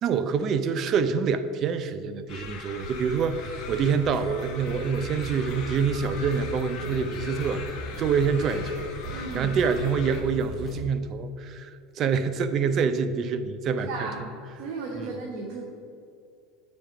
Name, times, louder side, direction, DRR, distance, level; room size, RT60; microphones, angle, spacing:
voice 1, 0.0-8.9 9.3-14.1 15.0-15.1, right 6 dB, 40° right, 11 dB, 0.5 m, -26 dB
sound 1, 2.3-10.2, left 5 dB, 50° left, 1.2 m, -41 dB
sound 2, 2.8-10.7, right 1 dB, 85° right, 1.6 m, -42 dB
sound 3, 3.9-10.9, right 1 dB, ahead, 1.9 m, -39 dB
voice 2, 9.1-9.5 13.9-14.2 14.6-15.7, right 3 dB, 65° right, -1 dB, 1.2 m, -35 dB
7.3 x 5.2 x 5.9 m, 2.4 s
supercardioid pair, 140°, 0 cm